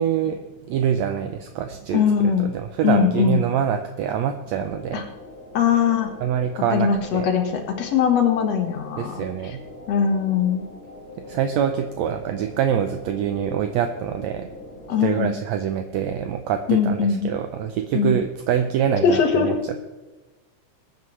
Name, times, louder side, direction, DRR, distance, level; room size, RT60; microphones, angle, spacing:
voice 1, 0.0-2.0 2.4-5.1 6.2-7.3 9.0-9.6 11.2-14.5 15.0-19.8, right 8 dB, 75° right, 6 dB, 1.8 m, -25 dB
voice 2, 1.9-2.5 2.8-3.4 4.9-5.0 5.5-6.1 6.7-9.2 9.9-10.7 14.9-15.3 16.7-17.3 17.9-18.2 19.0-19.5, left 7 dB, 60° left, 4 dB, 2.6 m, -20 dB
sound 1, 4.6-15.2, left 2 dB, 30° left, 3.4 m, -42 dB
22.0 x 9.4 x 3.2 m, 1.1 s
omnidirectional pair, 3.5 m